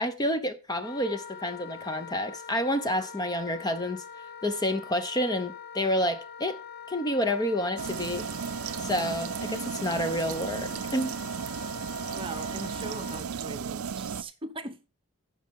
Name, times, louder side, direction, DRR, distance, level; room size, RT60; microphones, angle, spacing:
voice 1, 0.0-4.0 4.4-6.6 6.9-8.3 8.8-11.1, left 1 dB, 20° left, 0.8 m, -29 dB
Wind instrument woodwind instrument, 0.8-13.2, left 7 dB, 50° left, 1.2 m, -44 dB
sound 1, 7.8-14.2, right 7 dB, 80° right, 0.5 m, -35 dB
voice 2, 12.1-14.9, right 2 dB, 25° right, 0.9 m, -40 dB
15.0 x 5.5 x 3.6 m
head